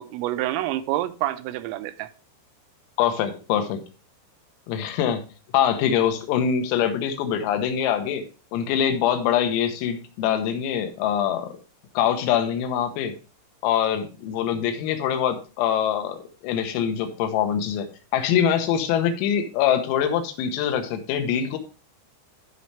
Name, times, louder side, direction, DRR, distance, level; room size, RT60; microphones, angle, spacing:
voice 1, 0.0-2.1, right 14 dB, 85° right, 3.2 m, -27 dB
voice 2, 3.0-3.8 4.7-5.2 5.5-8.2 8.5-11.5 12.0-13.1 13.6-16.2 16.4-17.9 18.1-21.6, left 9 dB, 85° left, 3.9 m, -24 dB
14.0 x 5.5 x 3.3 m
omnidirectional pair, 5.9 m